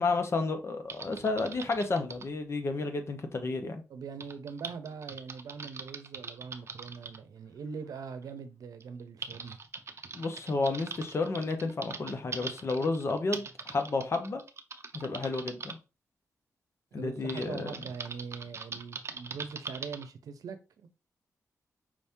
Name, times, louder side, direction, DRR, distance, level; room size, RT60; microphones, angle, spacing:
voice 1, 0.0-3.8 10.1-14.4 14.9-15.8 16.9-17.7, left 3 dB, 50° left, 1.0 m, -31 dB
Typing, 0.9-2.3 4.2-7.2 8.2-8.3 8.8-15.7 17.3-20.1, right 5 dB, 50° right, 0.6 m, -42 dB
voice 2, 3.9-9.6 16.9-20.9, right 5 dB, 85° right, 0.7 m, -42 dB
5.0 x 2.8 x 3.5 m
cardioid pair, 85°, 6 cm